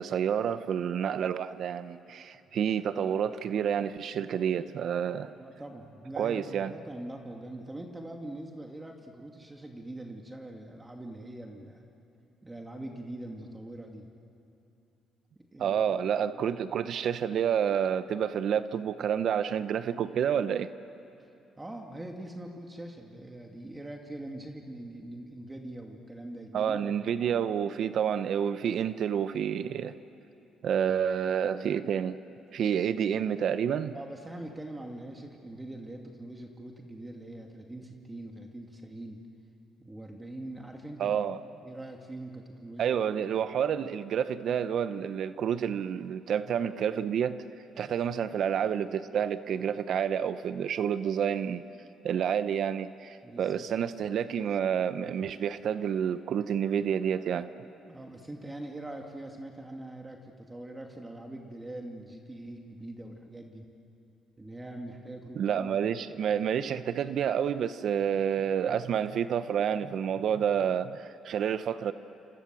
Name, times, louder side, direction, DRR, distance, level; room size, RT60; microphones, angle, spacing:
voice 1, 0.0-5.3 6.2-6.7 15.6-20.7 26.5-29.9 30.6-32.2 32.5-33.9 41.0-41.4 42.8-47.4 47.8-51.6 52.0-57.5 65.4-71.9, right 8 dB, 65° right, 12 dB, 0.8 m, -29 dB
voice 2, 2.3-2.7 5.4-11.8 12.4-14.1 15.5-15.8 16.2-16.4 21.6-27.2 33.9-39.2 39.8-41.3 41.6-43.0 43.3-43.4 53.2-53.7 57.9-63.7 64.4-65.8, right 1 dB, 15° right, 2 dB, 2.5 m, -43 dB
28.0 x 26.5 x 7.7 m, 2.9 s
cardioid pair, 80°, 0 cm